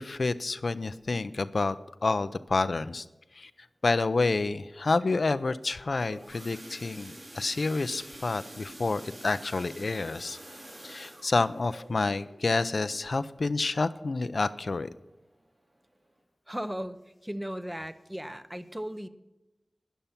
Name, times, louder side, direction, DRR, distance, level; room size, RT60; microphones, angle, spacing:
voice 1, 0.0-1.8 2.0-3.1 3.3-3.5 3.8-10.4 10.8-14.9, left 3 dB, 70° left, 13 dB, 0.5 m, -29 dB
sound 1, 5.7-14.4 14.8-15.1 15.3-15.4 15.9-16.0, right 1 dB, 80° right, 4.5 m, -48 dB
voice 2, 16.5-17.0 17.2-19.1, equal, 10° right, 11 dB, 0.8 m, -36 dB
12.5 x 10.0 x 5.9 m, 1.0 s
wide cardioid pair, 65°, 0 cm